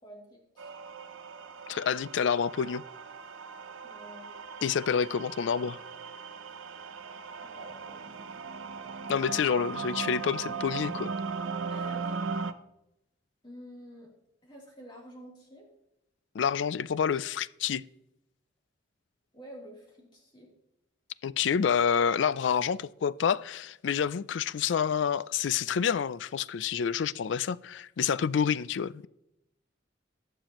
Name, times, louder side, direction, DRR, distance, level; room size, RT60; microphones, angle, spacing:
voice 1, 0.0-0.7 3.8-4.4 7.4-8.4 11.7-12.3 13.4-14.1 14.4-15.7 19.3-20.5, equal, 25° left, 3.3 m, -49 dB
sound 1, 0.6-12.5, right 4 dB, 90° right, 0.7 m, -38 dB
voice 2, 1.7-2.8 4.6-5.8 9.1-11.1 16.3-17.8 21.2-29.1, left 7 dB, 70° left, 0.4 m, -28 dB
20.0 x 6.8 x 3.0 m
head